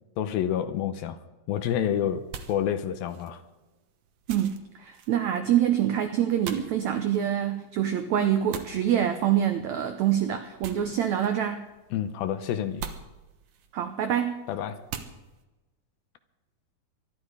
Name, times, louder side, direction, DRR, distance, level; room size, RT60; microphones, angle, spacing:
voice 1, 0.2-1.2 1.5-3.4 11.9-12.8 14.5-14.8, left 9 dB, 75° left, 10 dB, 2.6 m, -28 dB
sound 1, 1.6-15.4, right 7 dB, 65° right, 1.6 m, -45 dB
voice 2, 4.3-11.7 13.7-14.5, right 10 dB, 85° right, 8 dB, 1.6 m, -26 dB
24.0 x 11.5 x 4.9 m, 1.1 s
omnidirectional pair, 4.3 m